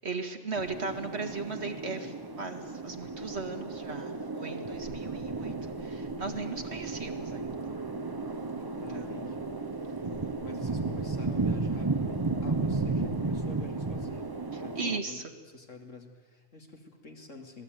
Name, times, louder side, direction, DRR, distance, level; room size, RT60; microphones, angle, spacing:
voice 1, 0.0-7.7 8.5-9.0 10.0-10.4 14.5-15.2, right 3 dB, 60° right, 4 dB, 2.3 m, -38 dB
sound 1, 0.5-15.0, right 3 dB, 20° right, 0.8 m, -34 dB
voice 2, 8.7-9.5 9.8-14.8 15.1-15.2 15.5-17.6, left 3 dB, 85° left, 3 dB, 3.0 m, -49 dB
26.0 x 18.5 x 9.3 m, 1.4 s
omnidirectional pair, 1.2 m